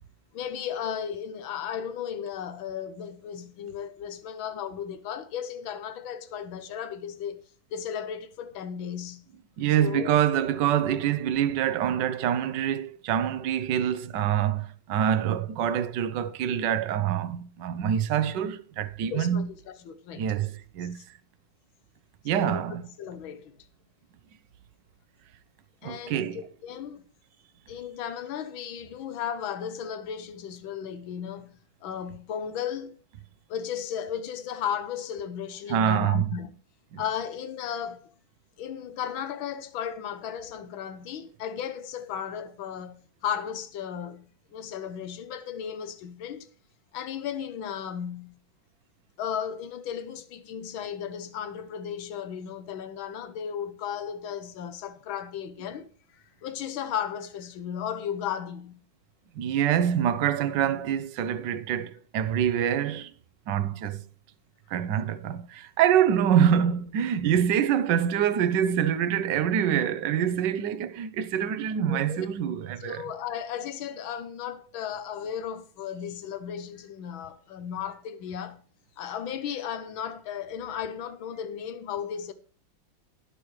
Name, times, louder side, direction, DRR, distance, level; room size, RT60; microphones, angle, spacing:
voice 1, 0.3-7.4 7.7-9.2 9.8-10.1 19.0-20.3 20.8-21.0 22.3-23.5 25.8-27.0 27.7-32.9 33.5-36.5 37.0-38.1 38.6-46.5 46.9-48.4 49.2-55.9 56.1-58.8 62.7-62.8 71.9-72.3 72.8-78.6 79.0-82.3, left 8 dB, 90° left, 1.7 m, -35 dB
voice 2, 9.6-19.5 20.1-21.0 22.2-22.9 25.8-26.4 35.7-36.3 36.9-37.0 59.3-63.1 63.5-64.0 64.7-73.1, right 9 dB, 70° right, 1.4 m, -25 dB
19.5 x 6.7 x 3.2 m
omnidirectional pair, 2.1 m